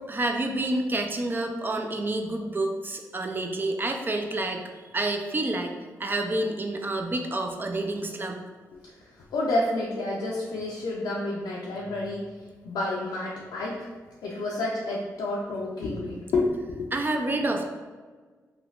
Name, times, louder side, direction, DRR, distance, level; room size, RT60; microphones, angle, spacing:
voice 1, 0.1-4.6 4.9-5.7 6.0-8.4 16.9-17.7, right 2 dB, 30° right, 3 dB, 0.4 m, -28 dB
voice 2, 9.3-12.3 12.6-13.9 14.2-16.9, left 2 dB, 85° left, -4 dB, 0.4 m, -29 dB
3.2 x 2.3 x 2.3 m, 1.5 s
cardioid pair, 60°, 7 cm